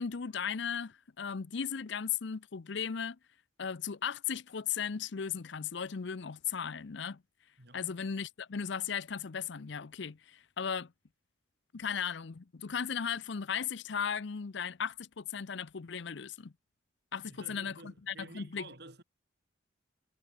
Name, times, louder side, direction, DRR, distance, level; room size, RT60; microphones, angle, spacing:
voice 1, 0.0-3.2 3.6-7.2 7.7-10.9 11.7-16.5 17.1-18.7, left 7 dB, 60° left, 0.6 m, -36 dB
voice 2, 17.2-19.0, right 2 dB, 55° right, 6.2 m, -51 dB
head